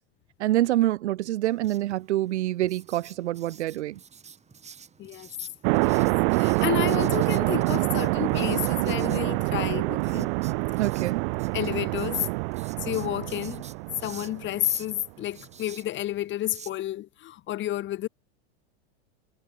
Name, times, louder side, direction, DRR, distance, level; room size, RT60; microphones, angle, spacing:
voice 1, 0.4-3.9 10.8-11.2, right 15 dB, 90° right, 1.4 m, -26 dB
Writing, 1.4-16.7, right 6 dB, 20° right, 7.8 m, -50 dB
sound 1, 5.6-14.7, right 31 dB, 55° right, 0.6 m, -26 dB
voice 2, 6.4-10.3 11.5-12.2 12.8-13.7 14.0-18.1, left 14 dB, 35° left, 2.4 m, -31 dB
supercardioid pair, 135°, 33 cm